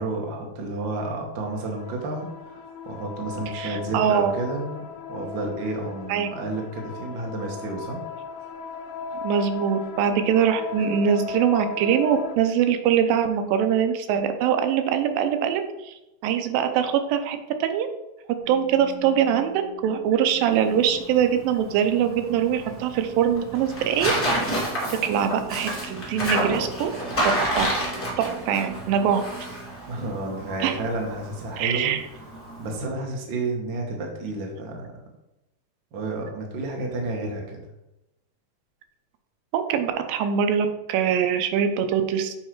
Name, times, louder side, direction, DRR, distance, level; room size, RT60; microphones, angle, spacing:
voice 1, 0.0-2.6 2.8-8.0 29.9-31.9 32.6-34.9 35.9-37.6, right 2 dB, 70° right, 0 dB, 1.1 m, -31 dB
sound 1, 1.5-12.4, left 5 dB, 80° left, 2.0 m, -37 dB
voice 2, 3.5-4.3 6.1-6.3 9.2-15.9 16.2-17.9 18.5-24.1 24.9-26.9 27.2-27.7 28.2-29.2 30.6-30.8 31.6-32.0 39.5-42.4, right 8 dB, 90° right, 7 dB, 2.4 m, -23 dB
sound 2, 18.4-30.6, right 6 dB, 30° right, 1.4 m, -44 dB
Tearing, 20.5-32.7, right 1 dB, 10° left, 0.8 m, -30 dB
8.1 x 3.2 x 4.5 m, 0.95 s
omnidirectional pair, 4.0 m